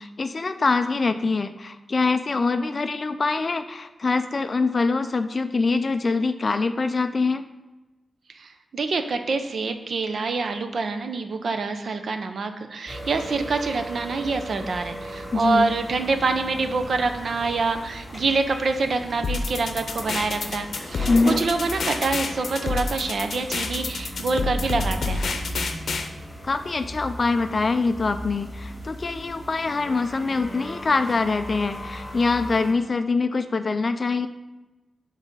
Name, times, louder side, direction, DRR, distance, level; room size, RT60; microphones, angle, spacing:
voice 1, 0.0-7.4 15.3-15.7 21.1-21.4 26.4-34.3, left 3 dB, 40° left, 9 dB, 0.3 m, -24 dB
voice 2, 8.3-25.2, right 3 dB, 60° right, 7 dB, 0.6 m, -26 dB
sound 1, 12.9-32.7, equal, 5° left, 2.0 m, -37 dB
sound 2, 19.2-26.1, left 3 dB, 70° left, 0.7 m, -29 dB
7.3 x 4.0 x 5.4 m, 1.1 s
wide cardioid pair, 140°, 0 cm